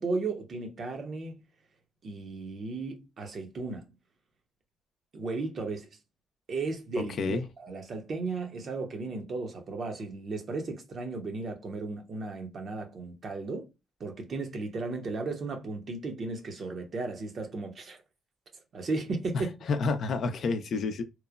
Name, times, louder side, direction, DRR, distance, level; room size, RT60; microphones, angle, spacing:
voice 1, 0.0-1.4 2.0-3.9 5.1-5.9 6.5-13.7 14.0-18.0 18.7-19.5, right 3 dB, 50° right, 0.8 m, -35 dB
voice 2, 7.0-7.5 19.3-21.0, left 4 dB, 60° left, 0.5 m, -30 dB
3.0 x 2.0 x 2.3 m
cardioid pair, 90°, 0 cm